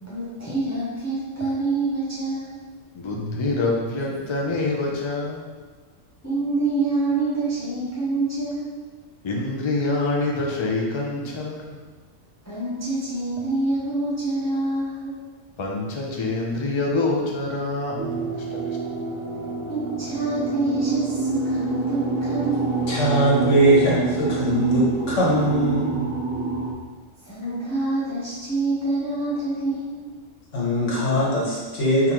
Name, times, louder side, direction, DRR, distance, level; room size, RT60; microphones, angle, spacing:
voice 1, 0.0-2.6 6.2-8.7 12.4-15.1 19.7-22.7 27.2-30.0, right 2 dB, 15° left, -10 dB, 1.1 m, -26 dB
voice 2, 2.9-5.5 9.2-11.8 15.6-18.8, left 2 dB, 35° left, -1 dB, 0.4 m, -26 dB
sound 1, 18.0-26.7, right 3 dB, 70° right, 1.2 m, -27 dB
voice 3, 22.9-26.2 27.4-27.5 30.5-32.1, right 1 dB, 65° left, -5 dB, 1.5 m, -21 dB
4.6 x 3.6 x 3.0 m, 1.4 s
omnidirectional pair, 1.4 m